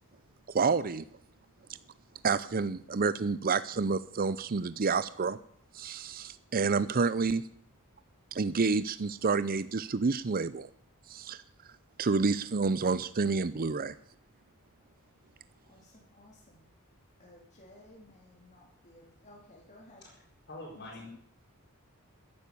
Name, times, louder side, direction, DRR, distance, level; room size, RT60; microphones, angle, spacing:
voice 1, 0.5-1.0 2.2-5.4 5.7-7.4 8.3-10.7 11.1-11.4 12.0-13.9, right 4 dB, 40° right, 15 dB, 0.6 m, -29 dB
voice 2, 1.3-2.3 5.9-6.4 8.2-8.3 11.0-11.4 11.7-11.8 14.8-20.0 20.8-21.1, left 1 dB, 35° left, -2 dB, 3.4 m, -59 dB
voice 3, 20.5-21.1, left 2 dB, 50° left, -6 dB, 5.4 m, -44 dB
14.5 x 11.0 x 8.5 m, 0.64 s
head